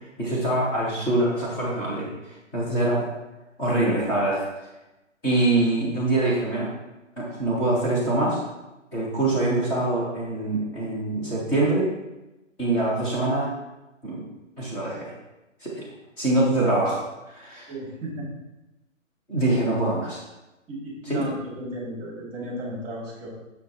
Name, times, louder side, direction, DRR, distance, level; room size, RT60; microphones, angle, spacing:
voice 1, 0.2-3.0 3.6-4.4 5.2-6.7 7.2-8.4 8.9-11.9 12.6-13.5 14.0-14.2 14.6-15.1 15.6-15.8 16.2-17.7 19.3-20.2 21.0-21.2, right 2 dB, 5° left, -8 dB, 0.5 m, -24 dB
voice 2, 17.7-18.3 19.4-19.6 20.7-23.3, right 1 dB, 25° right, -3 dB, 2.6 m, -34 dB
6.9 x 5.1 x 4.2 m, 1.0 s
hypercardioid pair, 150°, 39 cm